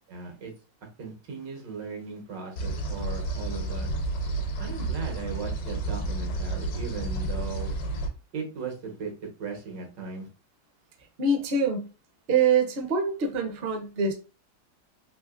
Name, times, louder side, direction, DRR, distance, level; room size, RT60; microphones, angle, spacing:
voice 1, 0.1-0.5 1.0-3.9 4.6-7.8 8.3-10.3, right 5 dB, 85° right, 1.8 m, -37 dB
sound 1, 2.6-8.1, right 2 dB, 70° left, 1.2 m, -31 dB
voice 2, 11.2-11.9 12.3-14.1, right 4 dB, 55° right, 0.6 m, -24 dB
3.7 x 2.8 x 2.4 m
omnidirectional pair, 1.9 m